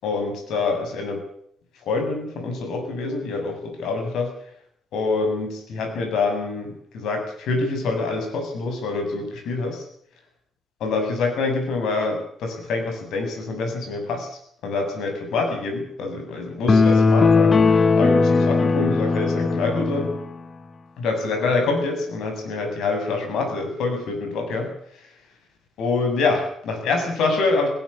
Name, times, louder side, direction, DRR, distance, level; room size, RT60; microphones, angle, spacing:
voice 1, 0.0-1.2 1.7-4.3 4.9-9.8 10.8-20.1 21.0-25.2 25.8-27.7, left 3 dB, 80° left, 5 dB, 7.6 m, -26 dB
sound 1, 16.7-20.2, left 4 dB, 25° left, 1.1 m, -18 dB
19.0 x 17.5 x 8.6 m, 0.66 s
cardioid pair, 160°, 0 cm